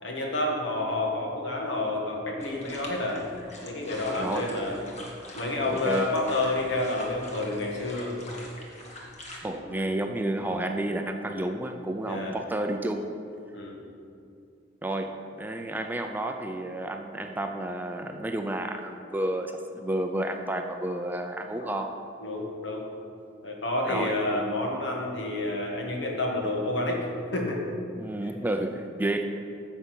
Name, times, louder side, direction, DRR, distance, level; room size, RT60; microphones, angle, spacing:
voice 1, 0.0-3.3 3.6-4.8 5.3-8.2 9.5-9.8 12.0-12.4 13.5-13.8 21.6-21.7 22.2-22.9 23.4-27.0 27.3-27.7, left 2 dB, 70° left, 0 dB, 1.7 m, -29 dB
sound 1, 2.4-9.4, left 1 dB, 35° left, 1.6 m, -44 dB
voice 2, 4.2-4.5 5.7-6.2 9.4-13.1 14.8-21.9 23.9-24.5 28.0-29.2, right 1 dB, 10° right, 4 dB, 0.4 m, -31 dB
9.9 x 7.0 x 5.9 m, 2.5 s
head